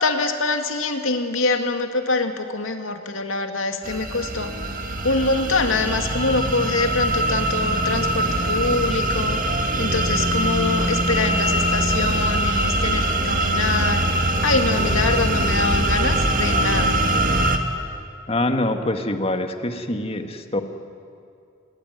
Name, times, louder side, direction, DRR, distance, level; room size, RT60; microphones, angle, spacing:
voice 1, 0.0-4.5 5.0-17.0, left 3 dB, 85° left, 6 dB, 2.3 m, -24 dB
sound 1, 3.8-17.6, right 1 dB, 45° right, 2.0 m, -22 dB
voice 2, 18.3-20.6, left 1 dB, 30° left, 6 dB, 1.7 m, -24 dB
27.0 x 21.5 x 9.6 m, 2.4 s
head